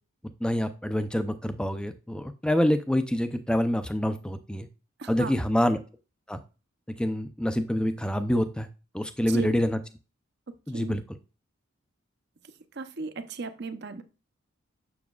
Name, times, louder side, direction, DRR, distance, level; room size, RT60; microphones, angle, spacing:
voice 1, 0.4-4.7 5.1-5.8 6.3-6.4 7.0-8.7 8.9-9.8 10.7-11.0, equal, 5° left, 10 dB, 0.5 m, -26 dB
voice 2, 5.0-5.3 9.3-9.6 10.7-11.0 12.7-14.0, right 3 dB, 55° right, 10 dB, 0.7 m, -35 dB
7.1 x 6.9 x 2.4 m, 0.32 s
head